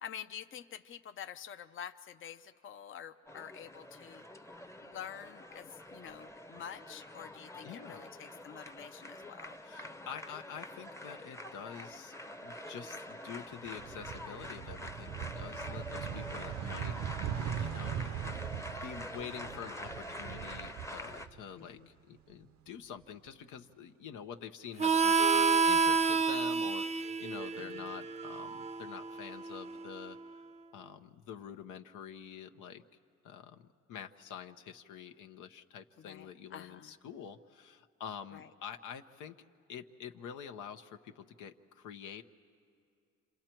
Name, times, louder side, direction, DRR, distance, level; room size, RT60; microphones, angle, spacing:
voice 1, 0.0-4.2 4.8-9.6 21.6-21.9 27.6-27.9 36.0-36.9 38.3-38.5, left 9 dB, 45° left, 9 dB, 0.6 m, -47 dB
sound 1, 3.3-21.3, left 1 dB, 10° left, 0.8 m, -46 dB
voice 2, 7.6-8.0 9.6-12.1 12.4-18.0 18.3-30.2 30.7-32.8 33.2-39.3 39.7-42.2, left 8 dB, 80° left, 7 dB, 0.9 m, -47 dB
sound 2, 13.6-21.8 22.1-23.3, right 9 dB, 70° right, 0.6 m, -41 dB
Harmonica, 24.8-30.1, right 5 dB, 20° right, 0.6 m, -29 dB
29.5 x 26.5 x 4.5 m, 2.5 s
cardioid pair, 90°, 30 cm